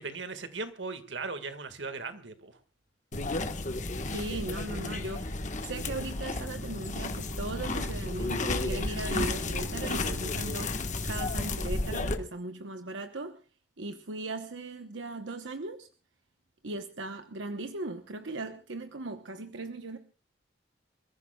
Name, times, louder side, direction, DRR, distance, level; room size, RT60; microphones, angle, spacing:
voice 1, 0.0-2.5, right 4 dB, 70° right, 1.9 m, -38 dB
sound 1, 3.1-12.2, left 2 dB, 40° left, 1.5 m, -32 dB
voice 2, 4.0-13.4 13.8-15.9 16.6-20.0, right 2 dB, 90° right, 1.1 m, -38 dB
28.0 x 15.0 x 2.4 m
head